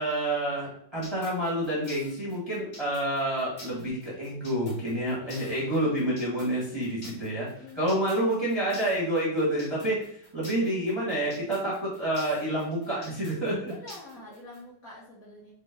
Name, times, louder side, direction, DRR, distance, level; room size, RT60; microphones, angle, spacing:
voice 1, 0.0-7.5 7.7-10.1 10.3-13.7, right 1 dB, 20° right, -6 dB, 0.7 m, -28 dB
sound 1, 1.0-14.6, left 1 dB, 35° left, 0.7 m, -47 dB
voice 2, 5.2-6.1 7.4-7.8 13.6-15.5, left 2 dB, 60° left, -5 dB, 0.9 m, -47 dB
5.1 x 2.1 x 3.4 m, 0.64 s
omnidirectional pair, 2.4 m